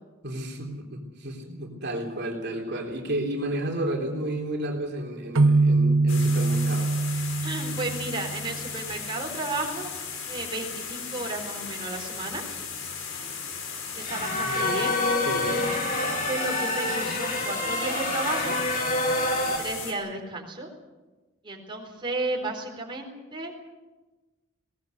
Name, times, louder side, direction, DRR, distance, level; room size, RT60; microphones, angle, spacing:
voice 1, 0.2-6.9 14.4-14.8 15.2-15.7, right 1 dB, 55° right, 0 dB, 3.6 m, -32 dB
sound 1, 5.4-8.9, right 3 dB, 75° right, 1.0 m, -23 dB
sound 2, 6.1-19.9, left 6 dB, 75° left, 5.0 m, -36 dB
voice 2, 7.4-9.9 10.3-12.4 13.9-14.9 15.7-18.6 19.4-20.7 21.4-23.5, right 2 dB, 25° right, 0 dB, 4.1 m, -33 dB
sound 3, 14.0-19.6, left 2 dB, 45° left, 4.1 m, -27 dB
21.0 x 19.0 x 8.3 m, 1.2 s
head